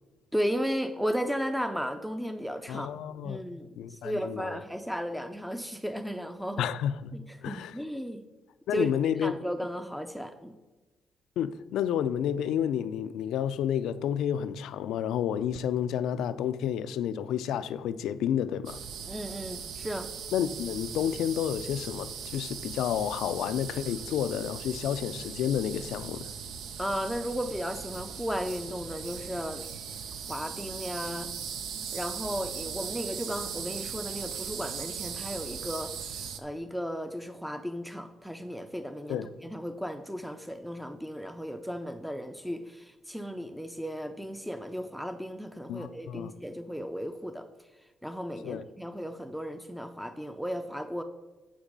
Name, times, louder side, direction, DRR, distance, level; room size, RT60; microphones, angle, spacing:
voice 1, 0.3-2.9 3.2-6.7 7.1-8.2 8.7-8.9 9.2-10.6 19.1-20.1 26.8-29.7 30.3-31.3 31.7-47.5 48.0-51.0, equal, ahead, 0.5 m, -35 dB
voice 2, 2.7-3.4 3.8-4.6 6.6-7.1 7.4-7.8 8.7-9.3 11.4-18.8 20.3-26.3 39.1-39.3 45.7-46.3 48.4-48.6, left 9 dB, 85° left, 0.4 m, -30 dB
sound 1, 18.7-36.4, right 7 dB, 80° right, 0.7 m, -39 dB
10.0 x 4.7 x 5.2 m
cardioid pair, 90°, 0 cm